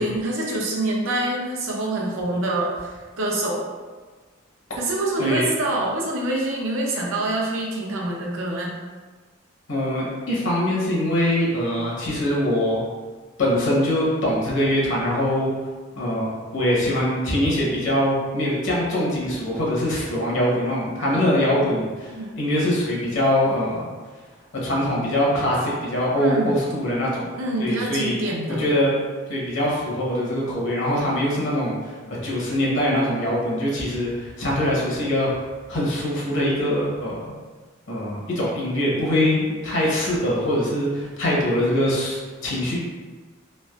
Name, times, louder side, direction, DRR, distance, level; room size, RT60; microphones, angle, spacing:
voice 1, 0.0-3.7 4.8-8.7 21.1-21.3 22.2-22.3 26.2-26.5 27.4-28.6, right 1 dB, 90° right, -2 dB, 0.6 m, -26 dB
voice 2, 9.7-12.8 13.4-15.5 15.9-23.9 24.6-27.2 27.6-28.2 28.6-28.9 29.3-37.3 37.9-42.8, left 1 dB, 65° left, -5 dB, 0.8 m, -23 dB
3.2 x 2.4 x 2.3 m, 1.4 s
head